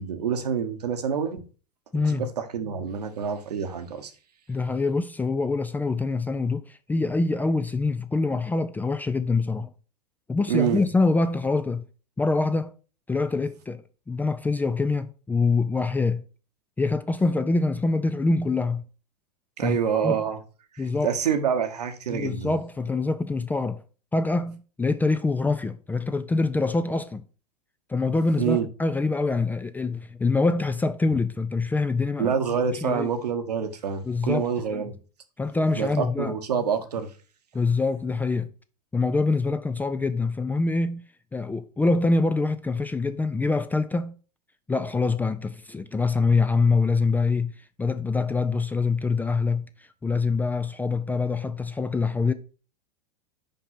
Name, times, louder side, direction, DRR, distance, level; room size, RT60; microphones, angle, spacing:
voice 1, 0.0-1.4 2.0-4.1 10.5-10.8 19.6-20.4 20.7-22.5 28.4-28.7 32.2-35.0 35.7-37.1, right 7 dB, 75° right, 1.1 m, -27 dB
voice 2, 1.9-2.3 4.5-9.7 10.3-11.9 12.2-12.7 13.1-16.2 16.8-18.9 19.6-20.2 20.8-21.1 22.1-23.8 24.1-27.2 27.9-32.3 32.7-33.1 34.0-34.8 35.4-36.3 37.5-38.5 38.9-41.0 41.3-44.1 44.7-47.5 47.8-52.3, left 3 dB, 10° left, 0.4 m, -25 dB
5.3 x 5.3 x 5.7 m
figure-of-eight pair, 90°, 21 cm